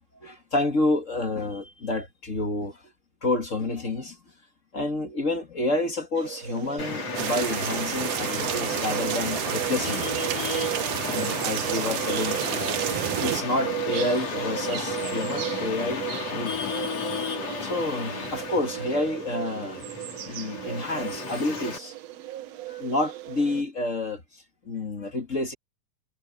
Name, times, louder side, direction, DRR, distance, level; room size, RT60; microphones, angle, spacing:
voice 1, 0.2-2.8 3.2-4.2 4.7-10.2 11.1-12.8 13.2-16.9 17.6-19.8 20.3-21.9 22.7-25.5, left 2 dB, 30° left, 1.7 m, -29 dB
sound 1, 6.2-23.6, right 16 dB, 60° right, 2.1 m, -35 dB
Traffic noise roadway noise, 6.8-21.8, left 6 dB, 50° left, 4.2 m, -34 dB
sound 2, 7.2-13.4, right 12 dB, 85° right, 1.3 m, -30 dB
omnidirectional pair, 3.7 m